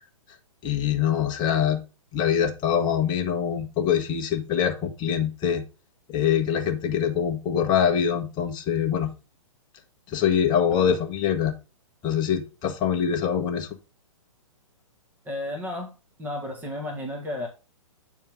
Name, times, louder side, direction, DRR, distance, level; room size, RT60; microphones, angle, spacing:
voice 1, 0.6-1.8 2.1-5.6 6.1-9.1 10.1-11.5 12.0-13.7, left 8 dB, 25° left, 5 dB, 1.4 m, -24 dB
voice 2, 15.2-15.9 16.2-17.5, left 1 dB, 10° right, 1 dB, 1.7 m, -33 dB
8.6 x 4.5 x 3.6 m, 0.31 s
hypercardioid pair, 130°, 18 cm